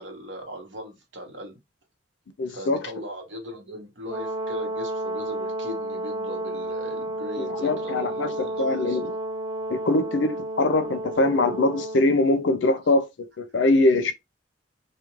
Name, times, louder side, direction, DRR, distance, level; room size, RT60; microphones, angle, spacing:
voice 1, 0.0-1.6 2.5-9.0, equal, 70° right, 1.0 m, -39 dB
voice 2, 2.4-2.9 7.4-9.2 9.7-14.1, left 2 dB, 70° left, 0.5 m, -23 dB
Brass instrument, 4.1-12.0, right 1 dB, 20° right, 0.5 m, -31 dB
2.4 x 2.2 x 3.0 m
head